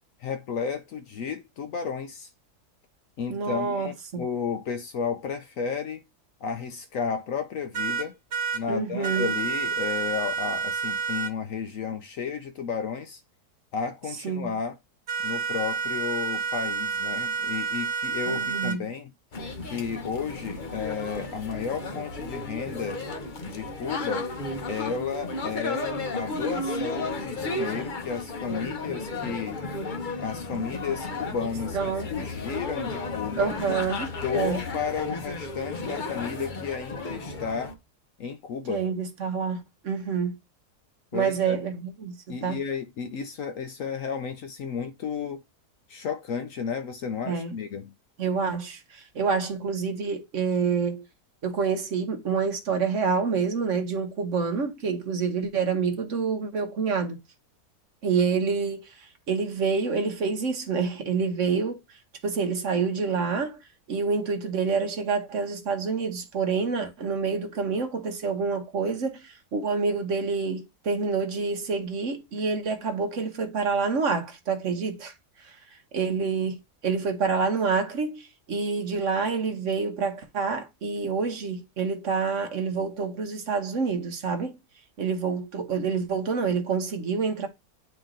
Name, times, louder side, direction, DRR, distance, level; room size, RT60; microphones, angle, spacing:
voice 1, 0.2-2.3 3.2-6.0 6.4-8.2 8.5-13.2 13.7-14.8 15.2-19.1 19.6-23.0 23.4-24.3 24.7-29.6 30.2-31.8 32.1-33.5 34.2-37.7 38.2-38.8 41.1-41.6 42.3-45.4 45.9-47.9, left 6 dB, 65° left, 0.9 m, -33 dB
voice 2, 3.3-4.3 8.7-9.3 14.2-14.5 18.3-18.9 31.7-32.1 33.4-34.1 34.3-34.6 38.7-40.4 41.1-42.6 47.2-47.5 48.2-51.1 51.4-57.2 58.0-61.8 62.2-63.6 63.9-75.1 75.4-84.6 85.0-87.5, right 5 dB, 55° right, 1.1 m, -27 dB
sound 1, 7.7-8.6 9.0-11.3 15.1-18.8, right 6 dB, 70° right, 1.5 m, -29 dB
sound 2, 19.3-37.7, left 2 dB, 40° left, 0.8 m, -33 dB
8.9 x 3.0 x 3.7 m
omnidirectional pair, 1.7 m